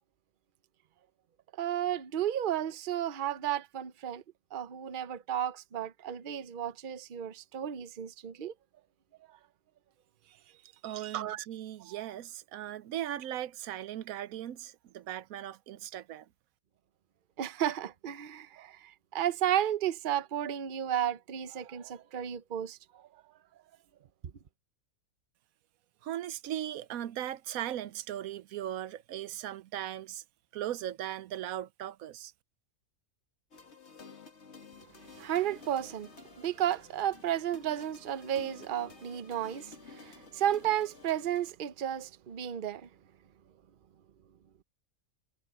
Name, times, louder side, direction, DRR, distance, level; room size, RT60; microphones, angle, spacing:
voice 1, 1.5-4.2 4.5-8.5 9.3-9.4 10.8-11.4 11.9-12.0 17.4-23.2 35.0-42.9, right 10 dB, 45° right, 0.8 m, -33 dB
voice 2, 10.6-16.3 26.0-30.2 30.5-32.3, right 12 dB, 85° right, 1.1 m, -38 dB
sound 1, 33.5-41.5, left 4 dB, 50° left, 1.9 m, -52 dB
omnidirectional pair, 1.5 m